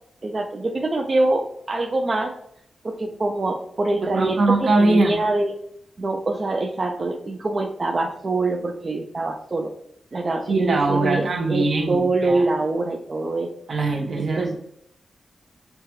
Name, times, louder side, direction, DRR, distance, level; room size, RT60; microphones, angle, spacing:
voice 1, 0.2-2.3 2.8-5.5 6.0-9.7 10.1-13.8 14.2-14.6, right 2 dB, 35° right, 0 dB, 0.4 m, -24 dB
voice 2, 4.0-5.2 10.5-12.4 13.7-14.6, right 2 dB, 50° right, 2 dB, 0.8 m, -21 dB
6.5 x 2.2 x 3.0 m, 0.71 s
wide cardioid pair, 155°, 0 cm